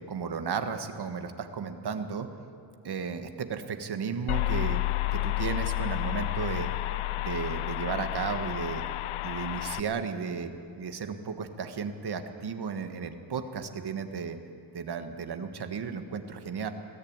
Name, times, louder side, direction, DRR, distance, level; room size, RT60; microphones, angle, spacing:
voice 1, 0.0-2.3 2.8-4.8 5.1-6.7 7.2-8.8 9.2-10.5 10.8-14.4 14.7-16.7, right 6 dB, 50° right, 7 dB, 1.5 m, -34 dB
sound 1, 4.3-9.8, left 17 dB, 85° left, 0.7 m, -30 dB
21.5 x 15.5 x 8.8 m, 2.5 s
wide cardioid pair, 140°, 49 cm